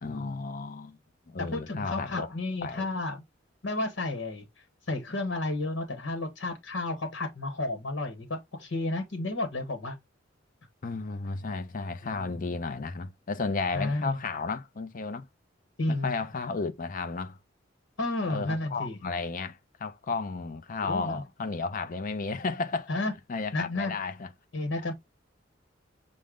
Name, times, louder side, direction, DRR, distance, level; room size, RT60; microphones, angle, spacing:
voice 1, 0.0-1.0 1.3-2.3 2.6-2.9 10.8-15.3 15.9-17.4 18.2-22.9 23.3-24.3 24.8-24.9, left 4 dB, 45° left, 0.5 m, -33 dB
voice 2, 1.4-3.2 3.6-4.4 4.9-9.9 12.1-12.3 13.7-14.2 15.8-16.2 18.0-19.0 20.8-21.2 22.9-23.1 23.5-23.9 24.5-24.9, left 2 dB, 85° left, 1.1 m, -32 dB
6.3 x 2.1 x 3.5 m
head